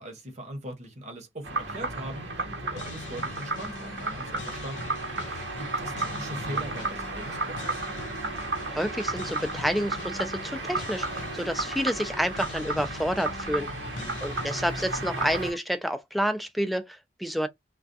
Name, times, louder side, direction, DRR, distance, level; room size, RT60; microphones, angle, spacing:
voice 1, 0.0-8.0 13.8-14.2, right 1 dB, 40° right, 0.9 m, -41 dB
sound 1, 1.4-15.5, right 3 dB, 80° right, 0.9 m, -33 dB
sound 2, 2.7-15.6, left 3 dB, 85° left, 0.5 m, -42 dB
voice 2, 8.7-17.5, equal, ahead, 0.3 m, -29 dB
2.3 x 2.2 x 2.6 m
head